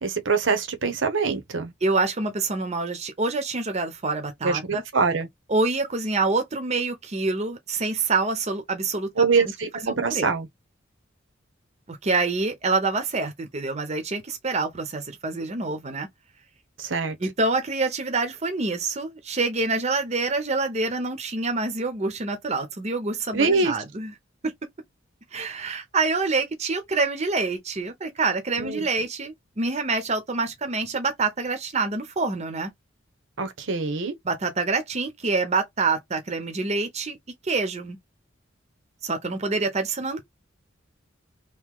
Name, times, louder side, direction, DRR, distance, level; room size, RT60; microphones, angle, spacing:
voice 1, 0.0-1.7 4.4-5.3 9.2-10.5 16.8-17.2 23.3-23.7 28.6-28.9 33.4-34.1, right 4 dB, 70° right, 0.9 m, -24 dB
voice 2, 1.8-4.8 5.5-9.4 9.8-10.3 11.9-16.1 17.2-24.1 24.4-24.5 25.3-32.7 34.2-37.2 37.4-38.0 39.0-40.2, right 3 dB, 35° right, 0.7 m, -26 dB
3.0 x 2.7 x 3.6 m
head